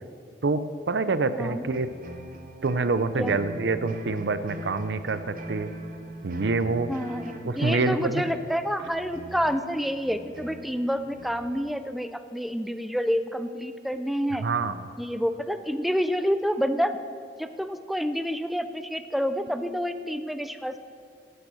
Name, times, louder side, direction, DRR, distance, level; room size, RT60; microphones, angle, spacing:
voice 1, 0.4-1.9 2.6-5.7 6.2-6.9 7.4-8.2 14.4-14.8, right 3 dB, 80° right, 13 dB, 0.6 m, -26 dB
sound 1, 1.6-11.7, right 1 dB, 50° right, 1.1 m, -42 dB
voice 2, 6.9-14.4 15.0-17.0 17.4-20.8, equal, ahead, 10 dB, 0.5 m, -28 dB
12.0 x 9.0 x 6.3 m, 2.4 s
head